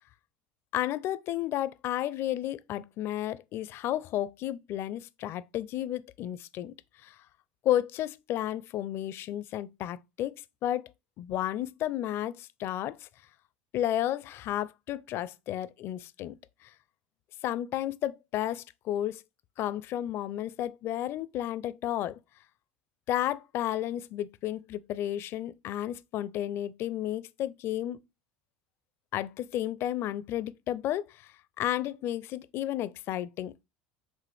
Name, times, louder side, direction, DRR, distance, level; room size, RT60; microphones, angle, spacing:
voice 1, 0.7-6.7 7.0-7.1 7.6-10.9 11.2-13.0 13.7-16.4 16.6-16.7 17.4-19.2 19.6-22.2 23.1-28.0 29.1-31.3 31.6-33.5, left 12 dB, 50° left, 0.4 m, -32 dB
6.1 x 2.5 x 3.3 m
hypercardioid pair, 75°, 5 cm